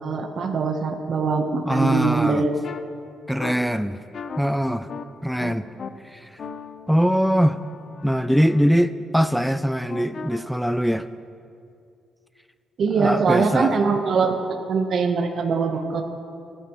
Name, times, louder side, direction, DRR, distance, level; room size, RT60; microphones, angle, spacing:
voice 1, 0.0-2.6 3.4-3.5 12.8-14.4 14.7-16.0, right 4 dB, 55° right, 4 dB, 1.0 m, -22 dB
voice 2, 1.7-2.5 3.3-4.0 4.4-4.9 5.2-5.7 6.0-6.3 6.9-7.6 8.0-11.1 12.9-13.8, equal, ahead, 13 dB, 0.4 m, -22 dB
sound 1, 2.6-2.8 3.4-3.5 4.1-4.4 4.9-5.0 5.4-5.9 6.4-8.6 9.9-10.4, left 6 dB, 55° left, 0.7 m, -37 dB
29.5 x 10.0 x 3.1 m, 2.5 s
cardioid pair, 90°, 0 cm